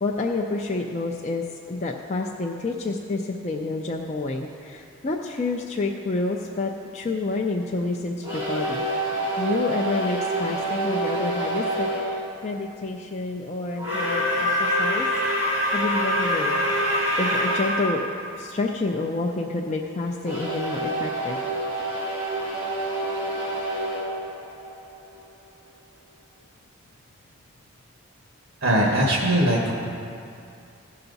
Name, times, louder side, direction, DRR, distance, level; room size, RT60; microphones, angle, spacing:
voice 1, 0.0-8.8 9.4-15.1 15.4-16.6 17.2-18.1 18.4-21.4, left 3 dB, 35° left, 0 dB, 0.4 m, -29 dB
sound 1, 8.2-12.1 13.8-17.9 20.2-25.1, equal, 15° right, 2.5 m, -26 dB
voice 2, 28.6-29.7, right 1 dB, 75° right, -3 dB, 1.4 m, -20 dB
15.5 x 5.7 x 4.0 m, 2.5 s
head